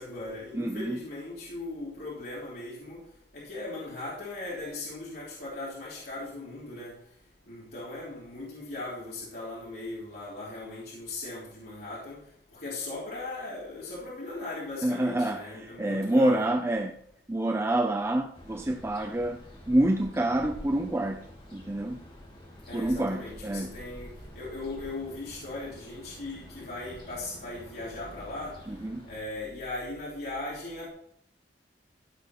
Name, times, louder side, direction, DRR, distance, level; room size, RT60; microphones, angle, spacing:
voice 1, 0.0-3.0 3.3-6.9 7.5-12.2 12.5-16.5 22.7-28.6 29.1-30.9, left 2 dB, 60° left, -6 dB, 3.4 m, -38 dB
voice 2, 0.5-1.0 14.8-17.0 17.3-19.4 19.7-22.0 22.7-23.8 28.7-29.0, right 1 dB, 15° right, 4 dB, 0.5 m, -27 dB
sound 1, 18.3-29.2, left 1 dB, 30° left, 2.7 m, -48 dB
15.0 x 5.7 x 4.2 m, 0.69 s
head